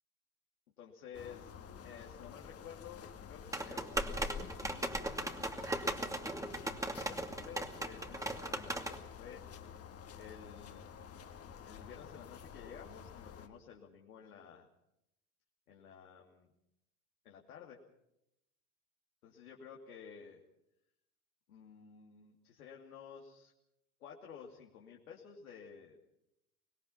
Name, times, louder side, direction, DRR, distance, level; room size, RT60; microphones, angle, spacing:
voice 1, 0.8-9.4 10.1-10.8 11.6-14.7 15.7-16.5 17.2-17.8 19.2-20.4 21.5-23.5 24.0-26.0, left 7 dB, 75° left, -1 dB, 2.9 m, -53 dB
sound 1, 1.1-13.5, left 7 dB, 30° left, 2.3 m, -51 dB
sound 2, 3.5-9.0, right 1 dB, 5° right, 2.6 m, -38 dB
25.5 x 20.5 x 5.8 m, 0.84 s
figure-of-eight pair, 70°, 44 cm